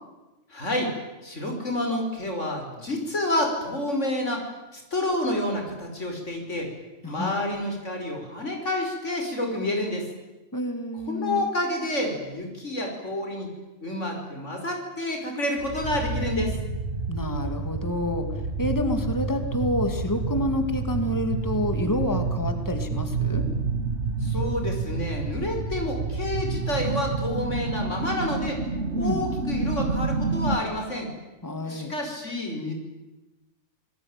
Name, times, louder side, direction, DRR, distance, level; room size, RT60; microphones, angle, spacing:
voice 1, 0.5-0.9 1.2-4.5 4.7-6.7 7.1-10.0 11.1-13.5 13.8-16.5 24.2-28.6 28.9-31.1 31.6-32.7, left 1 dB, 90° left, 3 dB, 5.6 m, -29 dB
voice 2, 7.0-7.3 10.5-11.5 17.1-18.3 18.6-23.4 29.0-29.2 31.4-31.9, left 1 dB, 15° left, 6 dB, 2.4 m, -28 dB
sound 1, 15.6-30.6, right 4 dB, 70° right, 2.2 m, -29 dB
28.0 x 20.0 x 9.1 m, 1.1 s
omnidirectional pair, 1.2 m